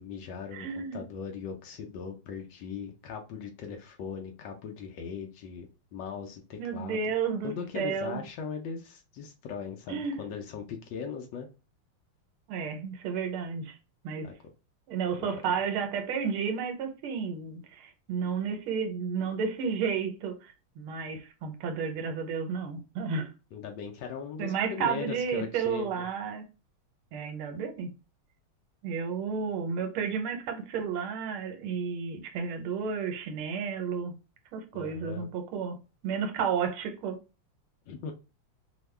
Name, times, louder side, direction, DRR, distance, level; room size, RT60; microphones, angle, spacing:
voice 1, 0.0-7.1 7.4-11.5 14.2-14.4 15.2-15.5 23.5-26.1 34.7-35.3 37.9-38.1, left 6 dB, 70° left, 1.2 m, -39 dB
voice 2, 0.5-1.0 6.6-8.2 9.9-10.2 12.5-13.8 14.0-14.3 14.9-23.3 24.4-26.4 27.1-27.9 28.8-34.1 34.5-35.8 36.0-37.2, right 6 dB, 80° right, 1.6 m, -32 dB
3.5 x 2.2 x 3.2 m
omnidirectional pair, 2.4 m